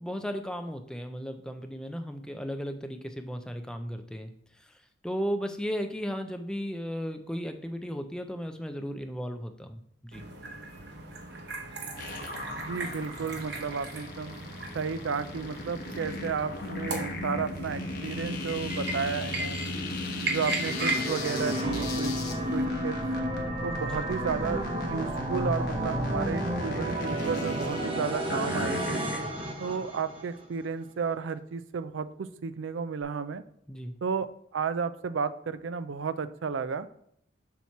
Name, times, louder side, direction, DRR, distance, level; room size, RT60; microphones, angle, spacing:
voice 1, 0.0-4.3 4.7-4.8 5.0-10.2 23.8-24.1 33.7-33.9, equal, 5° left, 6 dB, 0.5 m, -35 dB
sound 1, 10.1-22.6, right 2 dB, 60° right, 1.0 m, -38 dB
sound 2, 12.0-29.4, left 2 dB, 55° left, 1.2 m, -38 dB
voice 2, 12.6-14.4 14.7-19.6 20.3-22.2 22.5-23.0 23.6-29.0 29.6-33.4 34.0-36.9, right 5 dB, 80° right, 13 dB, 0.4 m, -33 dB
sound 3, 20.2-30.4, equal, 30° right, 0.8 m, -31 dB
7.1 x 3.0 x 5.8 m, 0.71 s
head